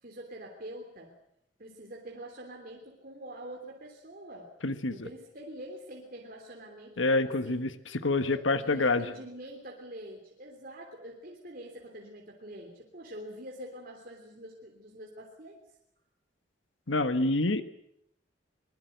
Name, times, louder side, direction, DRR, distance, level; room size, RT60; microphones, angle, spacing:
voice 1, 0.0-1.1 1.6-4.5 4.9-7.7 8.2-15.6, right 1 dB, 50° right, 0 dB, 3.3 m, -45 dB
voice 2, 4.6-5.1 7.0-9.1 16.9-17.6, left 2 dB, 85° left, 11 dB, 1.4 m, -27 dB
23.5 x 21.0 x 8.0 m, 0.77 s
head